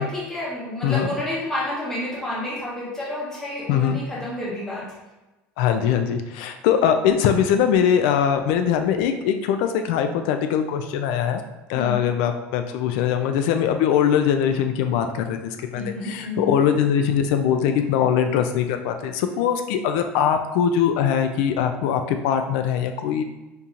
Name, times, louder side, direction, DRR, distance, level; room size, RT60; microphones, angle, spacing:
voice 1, 0.0-4.8 11.7-12.0 15.7-16.5, left 1 dB, 10° left, -7 dB, 1.2 m, -30 dB
voice 2, 0.8-1.1 3.7-4.0 5.6-11.4 11.7-23.2, left 8 dB, 80° left, 6 dB, 0.3 m, -22 dB
5.2 x 2.8 x 2.4 m, 1.1 s
cardioid pair, 170°, 5 cm